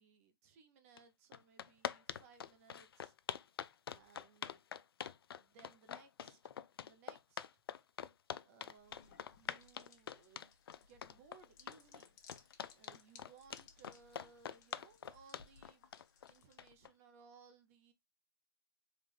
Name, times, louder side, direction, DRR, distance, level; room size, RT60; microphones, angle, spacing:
voice 1, 0.0-3.1 3.9-4.6 5.3-6.5 6.8-7.5 7.9-8.0 8.4-10.5 10.8-12.2 12.7-15.8 16.3-17.9, right 5 dB, 35° right, 0.6 m, -64 dB
sound 1, 1.0-1.1 1.3-16.9, left 8 dB, 80° left, 0.4 m, -45 dB
sound 2, 8.8-16.9, left 6 dB, 50° left, 0.9 m, -64 dB
3.8 x 2.4 x 3.2 m
hypercardioid pair, 145°, 12 cm